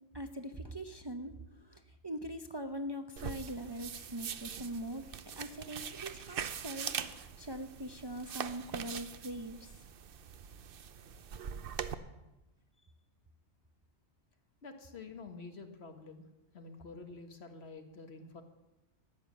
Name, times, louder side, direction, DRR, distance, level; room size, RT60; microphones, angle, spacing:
voice 1, 0.1-9.8, right 1 dB, 25° right, 7 dB, 0.6 m, -42 dB
sound 1, 3.2-11.9, right 8 dB, 60° right, 0.8 m, -42 dB
voice 2, 14.6-16.3 16.5-18.4, left 4 dB, 65° left, 6 dB, 1.7 m, -48 dB
13.5 x 9.6 x 7.2 m, 1.0 s
omnidirectional pair, 1.1 m